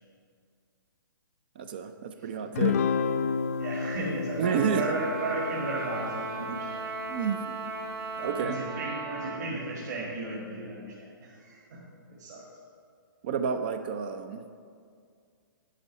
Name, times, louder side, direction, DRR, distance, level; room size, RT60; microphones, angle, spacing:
voice 1, 1.6-2.8 4.4-4.9 6.5-6.6 7.1-7.6 8.2-8.6 13.2-14.5, right 7 dB, 25° right, 9 dB, 0.4 m, -30 dB
Guitar, 2.5-7.2, left 6 dB, 40° left, 0.4 m, -31 dB
voice 2, 3.6-6.8 8.2-12.4, right 2 dB, 50° right, -5 dB, 2.1 m, -35 dB
Trumpet, 4.4-9.4, right 3 dB, 80° right, 1.9 m, -36 dB
9.8 x 6.1 x 7.3 m, 2.2 s
hypercardioid pair, 170°, 12 cm